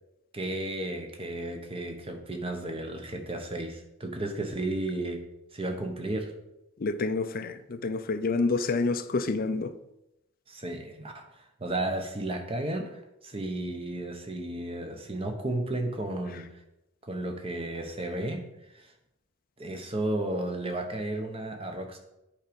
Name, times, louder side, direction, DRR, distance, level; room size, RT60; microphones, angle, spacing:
voice 1, 0.3-5.2 5.5-6.3 10.5-16.5 17.0-18.4 18.7-18.9 19.6-22.0, right 1 dB, 25° right, 1.1 m, -33 dB
voice 2, 6.8-9.7, left 3 dB, 45° left, 0.5 m, -28 dB
8.8 x 5.1 x 5.2 m
head